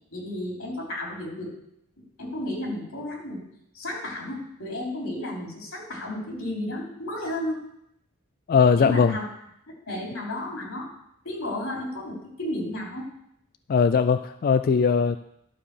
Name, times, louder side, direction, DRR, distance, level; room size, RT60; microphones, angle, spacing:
voice 1, 0.1-1.5 2.2-3.4 3.7-7.6 8.7-9.2 9.9-10.9 11.2-13.1, left 1 dB, 90° left, -1 dB, 3.2 m, -33 dB
voice 2, 8.5-9.1 13.7-15.2, left 6 dB, 45° left, 11 dB, 0.3 m, -20 dB
11.5 x 5.4 x 6.6 m, 0.76 s
head